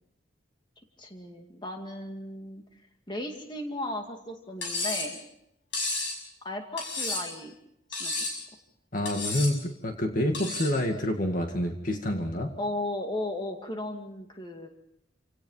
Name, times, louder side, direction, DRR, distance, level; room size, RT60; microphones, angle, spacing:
voice 1, 1.0-2.6 3.1-5.2 6.4-7.5 7.9-8.1 12.6-14.7, left 1 dB, 25° left, 3 dB, 2.3 m, -35 dB
Cutlery silverware, 4.6-5.1 5.7-6.2 6.8-7.4 7.9-8.4 9.1-9.6 10.3-10.8, left 2 dB, 75° left, 6.7 m, -32 dB
voice 2, 8.9-12.5, left 1 dB, 45° left, 4 dB, 2.1 m, -28 dB
28.0 x 17.5 x 5.7 m, 0.77 s
head